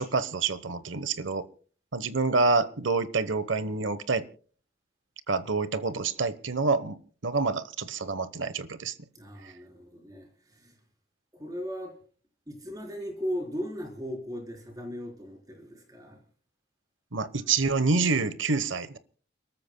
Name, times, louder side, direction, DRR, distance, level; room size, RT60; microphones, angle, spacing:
voice 1, 0.0-1.4 1.9-4.2 5.3-8.9 9.4-9.5 17.1-19.0, right 4 dB, 80° right, 14 dB, 1.1 m, -27 dB
voice 2, 9.1-10.8 11.3-11.9 12.5-16.2, equal, 20° right, 2 dB, 3.9 m, -37 dB
30.0 x 13.5 x 2.2 m, 0.41 s
head